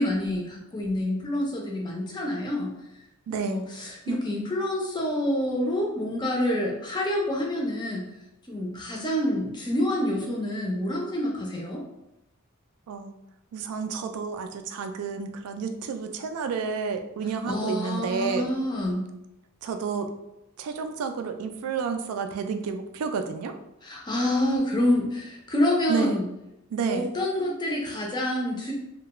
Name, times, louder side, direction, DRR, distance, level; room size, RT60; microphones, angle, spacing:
voice 1, 0.0-2.7 3.3-8.1 8.5-11.8 17.5-19.1 23.8-26.3 26.9-28.7, left 1 dB, 20° left, -1 dB, 0.4 m, -27 dB
voice 2, 3.3-3.6 4.1-4.2 12.9-13.1 13.5-18.5 19.6-20.1 20.6-23.6 25.9-26.2 26.7-27.1, right 5 dB, 90° right, 6 dB, 0.3 m, -30 dB
2.3 x 2.2 x 2.9 m, 0.88 s
head